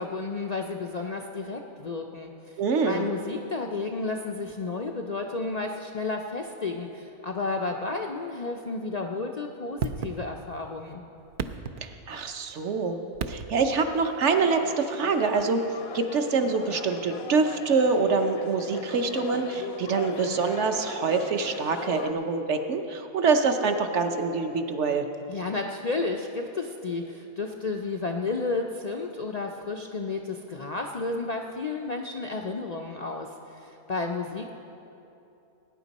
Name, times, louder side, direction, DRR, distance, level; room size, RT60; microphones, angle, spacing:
voice 1, 0.0-11.0 25.3-34.5, left 3 dB, 75° left, 2 dB, 0.3 m, -32 dB
voice 2, 2.6-3.0 11.8-15.6 15.9-25.0, right 4 dB, 60° right, 6 dB, 1.0 m, -25 dB
sound 1, 9.8-10.7 11.2-12.4 13.1-13.8 15.4-15.5, right 6 dB, 75° right, 0.4 m, -34 dB
sound 2, 14.3-22.1, left 7 dB, 60° left, 0.7 m, -39 dB
19.0 x 9.7 x 4.1 m, 2.9 s
omnidirectional pair, 1.5 m